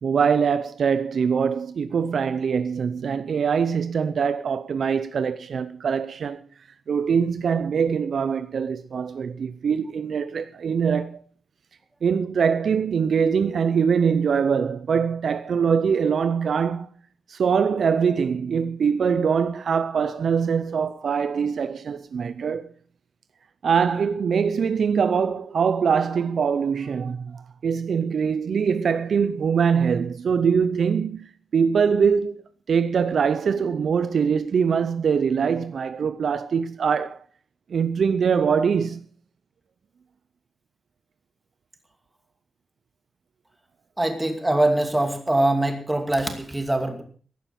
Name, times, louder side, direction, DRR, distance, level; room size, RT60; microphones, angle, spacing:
voice 1, 0.0-6.4 6.9-11.2 12.0-16.9 17.3-22.7 23.6-32.4 32.7-37.2 37.7-39.1, right 6 dB, 55° right, 0.6 m, -23 dB
voice 2, 44.0-47.0, right 1 dB, 10° right, 2.5 m, -23 dB
15.0 x 11.5 x 5.8 m
wide cardioid pair, 175°, 0 cm